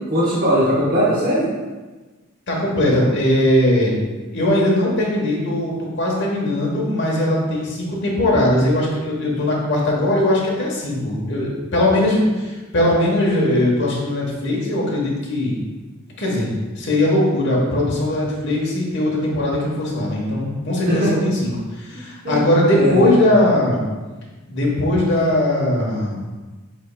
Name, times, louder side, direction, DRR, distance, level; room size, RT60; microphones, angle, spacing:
voice 1, 0.1-1.5 20.9-21.1 22.2-22.4 22.8-23.1, equal, 45° right, -9 dB, 1.1 m, -19 dB
voice 2, 2.5-3.9 4.3-15.6 16.2-23.8 24.5-26.2, left 1 dB, 55° left, -3 dB, 1.1 m, -19 dB
7.5 x 3.2 x 2.2 m, 1.3 s
head